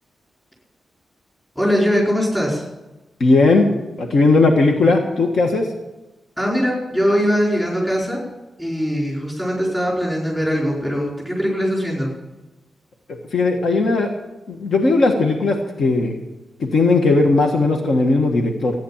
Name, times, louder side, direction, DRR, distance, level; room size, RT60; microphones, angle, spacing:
voice 1, 1.5-2.6 6.4-8.2 8.6-12.1, equal, 5° left, -4 dB, 4.6 m, -21 dB
voice 2, 3.2-3.7 4.0-5.7 13.3-14.1 14.5-16.2 16.6-18.8, left 3 dB, 60° left, 2 dB, 1.4 m, -17 dB
14.5 x 9.4 x 7.3 m, 1.0 s
wide cardioid pair, 175°, 0 cm